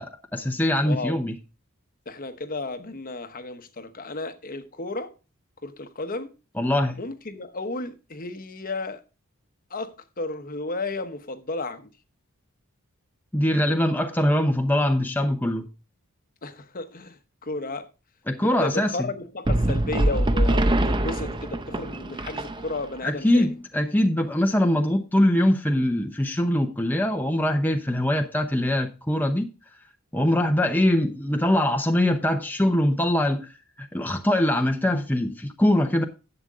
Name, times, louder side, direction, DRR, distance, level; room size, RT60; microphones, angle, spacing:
voice 1, 0.0-1.3 6.6-7.0 13.3-15.6 18.3-19.1 23.0-29.5 30.1-33.5 33.8-36.0, left 1 dB, 10° left, 0.8 m, -23 dB
voice 2, 0.8-1.2 2.1-5.1 5.6-6.3 7.0-9.0 9.7-11.9 16.4-17.9 18.4-23.5, left 2 dB, 40° left, 1.0 m, -33 dB
sound 1, 19.5-23.0, right 1 dB, 20° right, 0.6 m, -23 dB
11.5 x 7.9 x 3.6 m
head